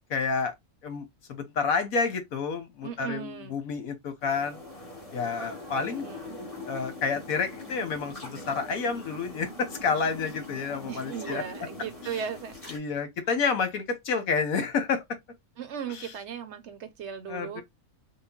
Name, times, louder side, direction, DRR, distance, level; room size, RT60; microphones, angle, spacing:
voice 1, 0.1-0.5 0.8-4.6 5.1-6.0 6.6-11.4 12.0-12.2 12.7-15.0 15.9-16.1 17.3-17.6, left 5 dB, 85° left, 1.4 m, -29 dB
voice 2, 2.8-3.6 5.8-6.4 10.9-12.6 15.6-17.6, right 7 dB, 65° right, 0.8 m, -37 dB
sound 1, 4.2-12.8, left 2 dB, 25° left, 1.4 m, -42 dB
3.7 x 2.2 x 3.6 m
omnidirectional pair, 1.4 m